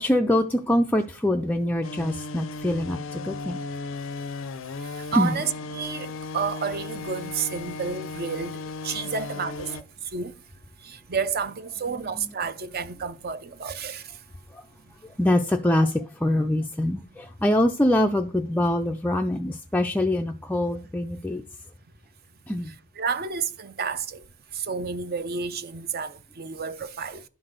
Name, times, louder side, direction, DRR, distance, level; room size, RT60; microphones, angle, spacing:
voice 1, 0.0-3.6 5.1-5.4 12.2-12.3 14.5-14.6 15.0-21.4 22.5-22.7, left 1 dB, 5° left, 0.4 m, -24 dB
sound 1, 1.8-9.8, left 3 dB, 60° left, 0.5 m, -36 dB
voice 2, 5.0-9.7 10.1-10.3 10.8-14.0 23.0-24.2 24.5-27.2, right 5 dB, 45° right, 0.6 m, -30 dB
11.0 x 4.0 x 6.4 m
head